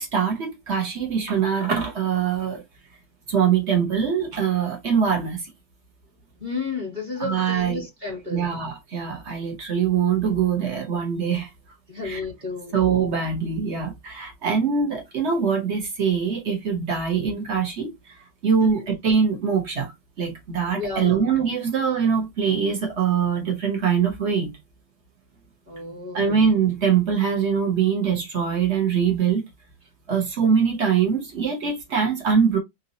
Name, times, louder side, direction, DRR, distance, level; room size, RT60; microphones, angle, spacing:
voice 1, 0.0-2.6 3.3-5.5 7.2-7.8 8.3-11.5 12.0-12.2 12.7-19.9 20.2-24.5 26.1-29.4 30.1-32.6, right 6 dB, 45° right, 1.0 m, -23 dB
voice 2, 6.4-8.5 11.9-12.8 18.6-18.7 20.7-21.2 25.7-26.5, left 3 dB, 25° right, 1.5 m, -32 dB
3.9 x 2.7 x 2.7 m
omnidirectional pair, 2.2 m